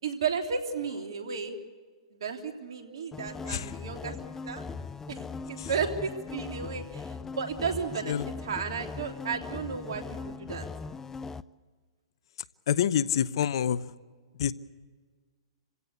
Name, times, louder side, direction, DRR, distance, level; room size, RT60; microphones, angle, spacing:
voice 1, 0.0-1.6 2.2-4.1 4.5-4.6 5.1-8.2 8.4-10.7, right 6 dB, 70° right, 5 dB, 3.2 m, -33 dB
sound 1, 3.1-11.4, left 4 dB, 15° left, 0.6 m, -40 dB
voice 2, 12.7-13.8 14.3-14.5, left 9 dB, 65° left, 18 dB, 0.8 m, -27 dB
28.0 x 16.5 x 8.3 m, 1.6 s
hypercardioid pair, 120°, 3 cm